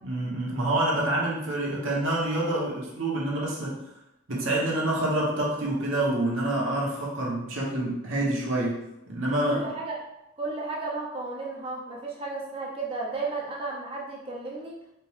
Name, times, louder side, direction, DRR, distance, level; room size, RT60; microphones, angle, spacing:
voice 1, 0.0-3.8 4.3-8.8 9.1-9.6, right 1 dB, 70° right, -3 dB, 1.0 m, -27 dB
voice 2, 9.5-10.0 10.4-14.8, right 3 dB, 25° right, -3 dB, 0.5 m, -33 dB
4.3 x 2.2 x 3.1 m, 0.86 s
head